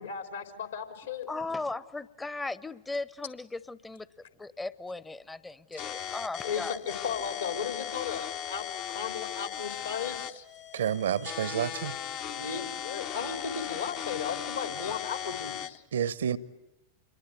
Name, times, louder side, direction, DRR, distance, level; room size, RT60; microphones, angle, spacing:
voice 1, 0.0-1.3 6.4-8.7 8.9-10.4 12.2-15.8, left 6 dB, 70° left, 3.8 m, -35 dB
voice 2, 1.3-4.1 4.4-6.8 12.5-12.6, left 3 dB, 10° left, 0.9 m, -37 dB
sound 1, 5.8-15.8, left 10 dB, 40° left, 1.0 m, -37 dB
voice 3, 10.7-12.0 15.9-16.4, right 9 dB, 65° right, 1.0 m, -29 dB
28.0 x 23.0 x 9.1 m
figure-of-eight pair, 90°, 0 cm